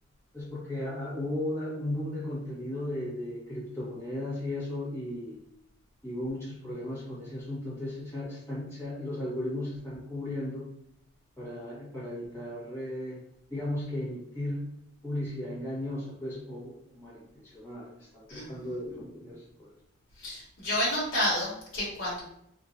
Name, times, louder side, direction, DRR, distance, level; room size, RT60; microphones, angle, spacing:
voice 1, 0.3-5.4 6.0-10.7 11.4-13.2 13.5-14.7 15.0-19.7, left 1 dB, 15° left, -8 dB, 1.1 m, -36 dB
voice 2, 20.2-22.2, left 1 dB, 65° left, -7 dB, 1.1 m, -30 dB
2.8 x 2.4 x 2.6 m, 0.74 s
head